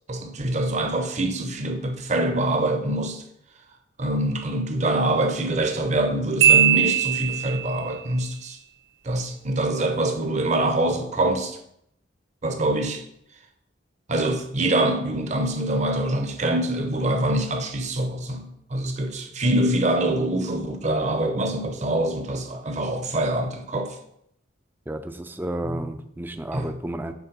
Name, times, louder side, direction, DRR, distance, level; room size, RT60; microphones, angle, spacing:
voice 1, 0.1-3.2 4.0-8.6 9.0-11.6 12.4-13.0 14.1-24.0 25.6-25.8 26.5-26.7, right 1 dB, 35° right, 0.7 m, -25 dB
Marimba xylophone, 6.4-7.8, right 10 dB, 70° right, 0.5 m, -19 dB
voice 2, 24.9-27.1, right 1 dB, 10° right, 0.4 m, -32 dB
7.2 x 3.5 x 5.2 m
head